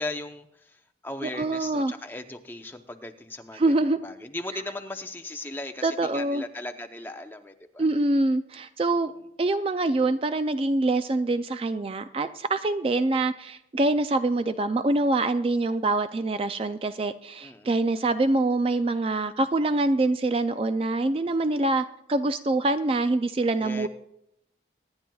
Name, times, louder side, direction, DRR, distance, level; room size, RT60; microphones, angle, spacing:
voice 1, 0.0-7.9 17.4-17.8 23.6-23.9, left 2 dB, 10° left, 6 dB, 0.7 m, -38 dB
voice 2, 1.2-1.9 3.5-4.0 5.8-6.4 7.8-9.1 9.4-23.9, right 2 dB, 30° right, 11 dB, 0.3 m, -25 dB
24.5 x 10.5 x 2.3 m, 0.81 s
head